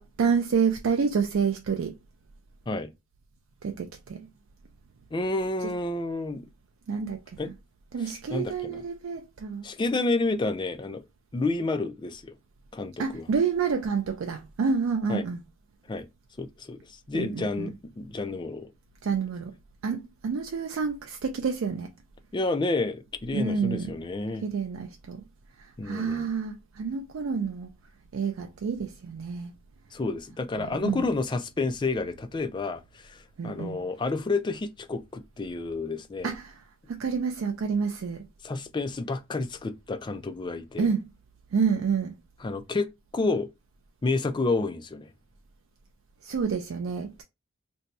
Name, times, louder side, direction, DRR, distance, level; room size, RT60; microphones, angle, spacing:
voice 1, 0.0-1.9 3.6-4.2 6.9-7.5 7.9-9.6 13.0-15.4 17.1-17.7 19.0-19.5 19.8-21.9 23.3-23.9 24.4-25.2 25.6-27.7 28.1-29.5 30.6-31.1 33.4-33.8 36.2-36.5 36.9-38.2 40.8-41.1 41.5-42.1 46.2-47.2, right 5 dB, 70° right, 0.4 m, -28 dB
voice 2, 5.1-6.5 7.4-7.5 8.0-8.8 9.6-11.0 11.3-12.4 12.7-13.3 15.1-15.3 15.9-16.1 16.4-18.7 22.3-24.4 25.8-26.3 29.9-36.3 38.4-40.9 42.4-43.5 44.0-45.1, left 3 dB, 20° left, 0.3 m, -30 dB
2.6 x 2.2 x 4.0 m
head